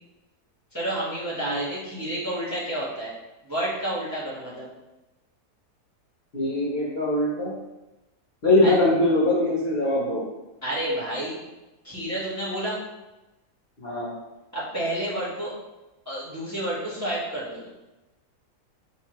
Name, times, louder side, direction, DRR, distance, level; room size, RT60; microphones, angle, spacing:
voice 1, 0.7-3.1 3.4-4.7 8.6-8.7 10.6-11.3 11.8-12.8 14.5-15.5 16.0-17.7, right 1 dB, 15° right, -7 dB, 0.8 m, -30 dB
voice 2, 6.3-7.5 8.4-10.2 13.8-14.1, left 1 dB, 50° left, -7 dB, 0.8 m, -22 dB
4.4 x 2.8 x 2.8 m, 1.0 s
omnidirectional pair, 1.7 m